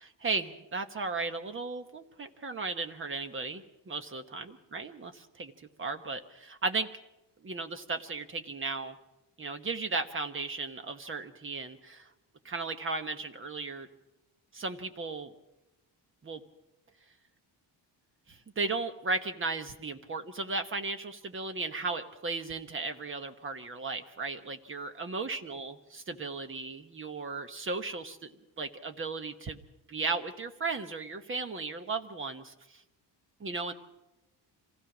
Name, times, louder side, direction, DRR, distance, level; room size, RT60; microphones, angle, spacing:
voice 1, 0.0-4.5 4.7-5.5 5.8-7.0 7.4-9.0 9.4-12.1 12.4-13.9 14.5-15.3 16.2-16.4 18.3-28.3 28.6-29.6 29.9-32.5 33.4-33.7, right 3 dB, 30° right, 8 dB, 1.2 m, -35 dB
26.5 x 16.0 x 6.2 m, 0.94 s
cardioid pair, 175°, 44 cm